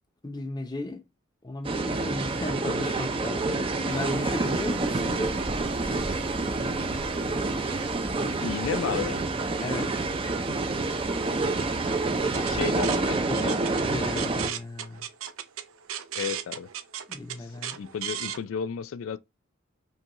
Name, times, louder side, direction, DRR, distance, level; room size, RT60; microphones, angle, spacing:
voice 1, 0.2-1.0 1.4-3.5 3.8-5.4 9.6-9.9 12.3-12.7 13.3-15.1 17.1-17.8, left 2 dB, 20° left, 0.6 m, -35 dB
sound 1, 1.6-14.5, right 3 dB, 25° right, 0.4 m, -28 dB
sound 2, 3.9-13.0, equal, 65° right, 1.7 m, -44 dB
voice 2, 8.4-9.2 12.4-13.7 16.1-16.7 17.4-19.2, left 7 dB, 75° left, 0.3 m, -33 dB
sound 3, 12.1-18.4, right 10 dB, 85° right, 0.5 m, -36 dB
5.3 x 2.3 x 2.9 m
head